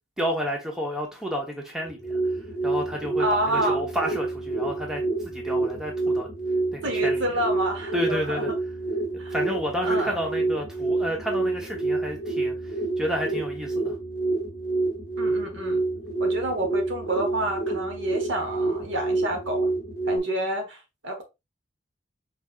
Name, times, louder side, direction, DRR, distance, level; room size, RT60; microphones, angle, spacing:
voice 1, 0.2-2.2 2.6-6.3 6.7-7.2 7.9-8.5 9.1-13.9, equal, 5° right, 1.0 m, -31 dB
sound 1, 1.8-20.2, right 3 dB, 50° left, 1.1 m, -28 dB
voice 2, 3.2-3.8 6.8-8.5 9.2-9.3 9.8-10.2 15.2-15.8 16.2-19.7 20.1-20.8 21.0-21.2, right 1 dB, 75° right, 1.3 m, -28 dB
5.1 x 3.5 x 2.4 m
head